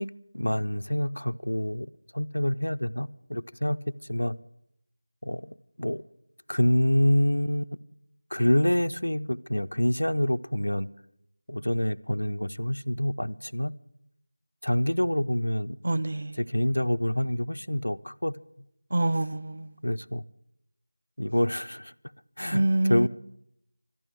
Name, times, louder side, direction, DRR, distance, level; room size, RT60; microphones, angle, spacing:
voice 1, 0.0-3.8 4.1-4.4 5.2-6.0 6.5-7.8 8.3-10.9 11.5-13.7 14.6-15.8 16.4-18.4 19.8-20.2 21.2-21.9 22.4-23.1, left 1 dB, 90° left, 0.5 m, -27 dB
voice 2, 15.8-16.4 18.9-19.7 22.5-23.1, right 2 dB, 40° right, 0.5 m, -26 dB
14.0 x 10.5 x 8.9 m
figure-of-eight pair, 170°, 0 cm